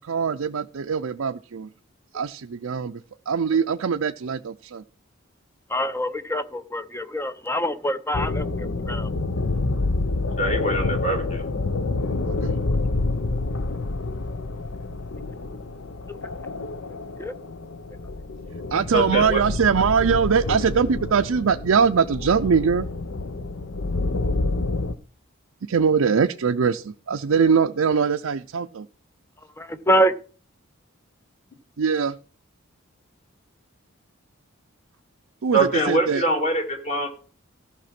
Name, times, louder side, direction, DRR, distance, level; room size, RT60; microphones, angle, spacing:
voice 1, 0.0-1.7 2.1-4.8 12.3-12.5 18.7-22.9 25.7-28.9 31.8-32.2 35.4-36.3, right 6 dB, 80° right, 6 dB, 0.5 m, -22 dB
voice 2, 5.7-9.1 16.1-16.2 17.2-17.3 29.6-30.1, equal, 10° left, 12 dB, 0.5 m, -25 dB
sound 1, 8.1-24.9, left 3 dB, 70° left, 0.7 m, -28 dB
voice 3, 10.4-11.4 18.9-19.4 35.5-37.1, right 2 dB, 35° left, 3 dB, 2.4 m, -23 dB
14.0 x 5.8 x 5.9 m, 0.41 s
head